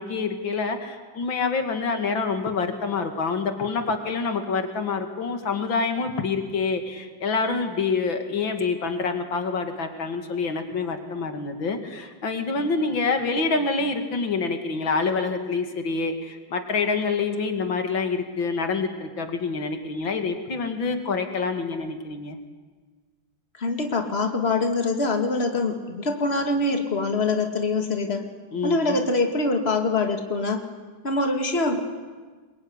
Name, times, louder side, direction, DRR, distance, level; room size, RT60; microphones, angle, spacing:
voice 1, 0.0-22.4 28.5-29.0, left 4 dB, 90° left, 6 dB, 3.0 m, -27 dB
voice 2, 23.6-28.2 28.6-30.6 31.0-31.8, left 3 dB, 30° left, 4 dB, 2.6 m, -24 dB
26.5 x 22.5 x 9.8 m, 1.4 s
omnidirectional pair, 2.1 m